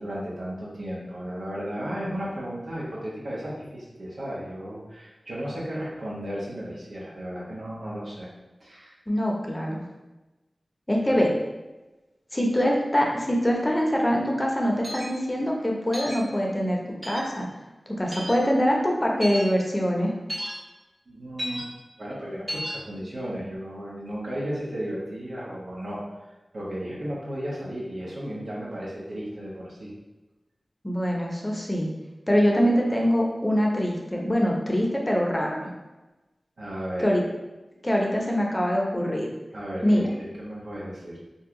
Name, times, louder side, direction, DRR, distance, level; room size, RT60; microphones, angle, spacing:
voice 1, 0.0-8.3 8.6-9.0 11.1-11.2 21.1-21.7 22.0-26.0 26.5-29.9 36.6-37.1 39.5-41.2, equal, 85° right, -6 dB, 0.9 m, -34 dB
voice 2, 9.1-9.8 10.9-11.3 12.3-17.5 17.9-20.1 30.8-31.9 32.3-35.7 37.0-37.2 37.8-39.3 39.8-40.1, equal, 25° left, -1 dB, 0.7 m, -24 dB
sound 1, 14.8-15.1 15.9-16.2 17.0-17.3 18.1-18.4 19.2-19.4 20.3-20.5 21.4-21.6 22.5-22.7, equal, 40° right, 1.3 m, -33 dB
2.7 x 2.3 x 3.6 m, 1.1 s
cardioid pair, 45°, 0 cm